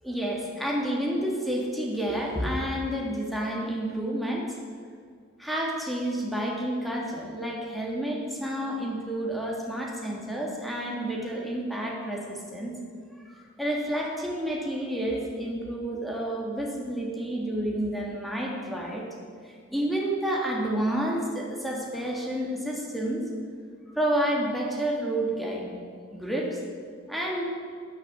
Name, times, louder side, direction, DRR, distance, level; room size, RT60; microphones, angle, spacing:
voice 1, 0.0-4.5 5.4-12.7 13.2-19.1 19.4-23.2 23.9-25.8 26.1-26.5 27.1-27.4, right 1 dB, ahead, -2 dB, 3.0 m, -30 dB
13.0 x 11.0 x 8.8 m, 2.1 s
head